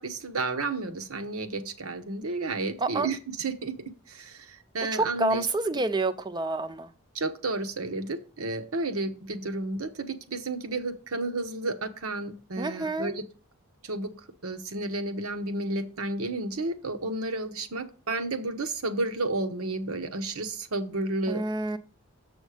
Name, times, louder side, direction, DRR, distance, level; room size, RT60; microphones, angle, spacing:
voice 1, 0.0-5.5 7.1-13.2 13.8-14.1 14.4-21.4, right 2 dB, 80° right, 1.0 m, -32 dB
voice 2, 4.9-6.9 12.6-13.2 21.3-21.8, right 2 dB, 20° right, 0.5 m, -28 dB
7.4 x 6.2 x 4.9 m
head